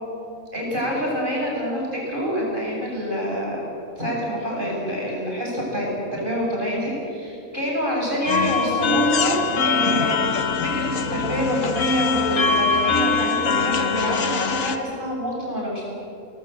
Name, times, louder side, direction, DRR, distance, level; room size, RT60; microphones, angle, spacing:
voice 1, 0.5-3.6 4.0-5.9 6.1-10.2 10.6-15.9, equal, 35° right, -3 dB, 7.8 m, -26 dB
sound 1, 8.3-14.8, left 4 dB, 60° left, 1.6 m, -22 dB
24.5 x 20.0 x 8.2 m, 2.8 s
omnidirectional pair, 1.5 m